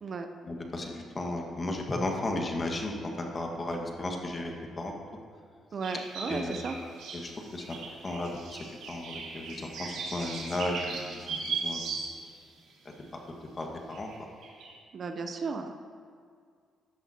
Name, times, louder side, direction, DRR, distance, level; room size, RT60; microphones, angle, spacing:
voice 1, 0.4-4.9 6.3-7.8 8.0-8.6 8.9-12.0 12.8-12.9 13.6-14.1, left 2 dB, 35° left, 2 dB, 1.7 m, -35 dB
voice 2, 5.7-6.8 14.9-15.7, right 4 dB, 50° right, 6 dB, 0.7 m, -34 dB
sound 1, 5.8-12.5 12.9-13.0 13.9-14.2 14.4-14.7, right 4 dB, 85° right, 1.9 m, -38 dB
14.0 x 11.0 x 2.9 m, 2.1 s
cardioid pair, 90°, 0 cm